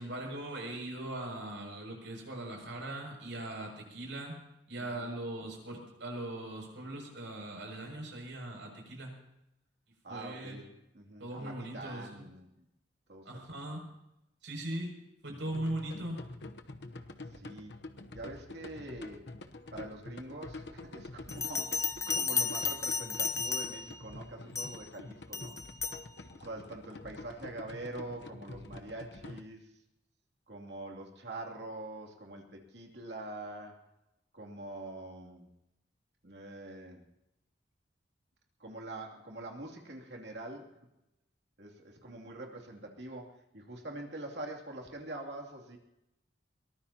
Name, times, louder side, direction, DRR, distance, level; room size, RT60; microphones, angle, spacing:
voice 1, 0.0-4.4 4.7-9.1 10.1-10.6 11.2-12.3 13.3-13.8 14.4-14.9 15.2-16.2, right 1 dB, 85° right, 1 dB, 6.9 m, -40 dB
voice 2, 4.8-5.1 10.0-12.7 13.1-13.8 15.3-15.7 17.3-19.4 19.7-25.6 26.3-29.8 30.5-33.9 34.3-35.5 36.2-37.0 38.6-40.9 41.6-45.8, right 2 dB, 65° right, 1 dB, 2.9 m, -45 dB
sound 1, 15.5-29.4, left 2 dB, 65° left, 1.0 m, -47 dB
Bell, 21.3-24.0 24.5-24.9 25.3-26.0, left 5 dB, 15° left, 0.6 m, -33 dB
22.5 x 19.0 x 2.9 m, 0.86 s
head